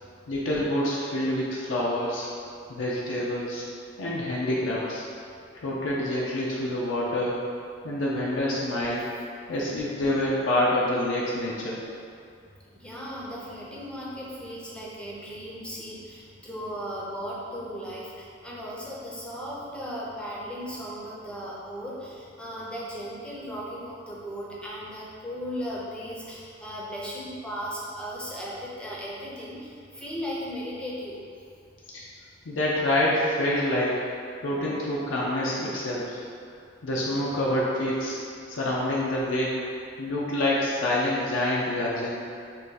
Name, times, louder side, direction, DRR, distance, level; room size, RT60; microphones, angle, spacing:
voice 1, 0.3-2.3 2.7-3.6 4.0-5.0 5.6-7.4 7.8-9.0 9.5-11.8 31.9-32.1 32.5-34.0 34.4-36.2 36.8-38.2 38.5-39.5 40.0-42.1, left 1 dB, 90° left, -5 dB, 0.5 m, -27 dB
voice 2, 12.6-31.2, equal, 5° left, -6 dB, 0.5 m, -36 dB
2.7 x 2.5 x 3.8 m, 2.4 s
head